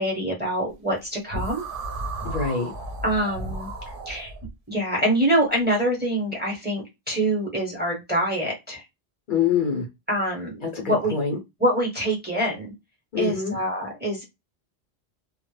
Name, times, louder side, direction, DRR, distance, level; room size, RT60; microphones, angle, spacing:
voice 1, 0.0-1.6 3.0-3.7 4.1-4.3 4.7-8.8 10.1-11.2 11.6-12.7 13.2-14.2, right 1 dB, 10° right, -1 dB, 0.7 m, -25 dB
sound 1, 1.3-4.5, right 2 dB, 60° right, 0.8 m, -33 dB
voice 2, 2.2-2.7 9.3-9.9 10.6-11.4 13.1-13.6, left 7 dB, 55° left, 2 dB, 0.7 m, -25 dB
2.2 x 2.0 x 3.0 m, 0.21 s
omnidirectional pair, 1.1 m